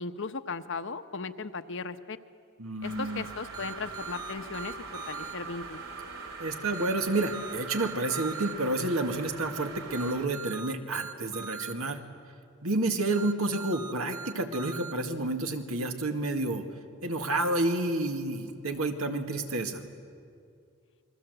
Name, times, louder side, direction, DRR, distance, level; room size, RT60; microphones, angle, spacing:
voice 1, 0.0-2.2 2.8-5.8, left 4 dB, 60° left, 10 dB, 0.9 m, -37 dB
voice 2, 2.6-3.2 6.4-12.0 12.6-16.6 17.0-19.9, right 2 dB, 85° right, 5 dB, 2.1 m, -30 dB
sound 1, 2.8-10.3, right 4 dB, 65° right, 3.5 m, -42 dB
sound 2, 3.5-5.3 6.7-8.5 9.9-11.7 13.1-14.9, right 5 dB, 20° right, 0.8 m, -41 dB
29.0 x 22.0 x 8.0 m, 2.3 s
head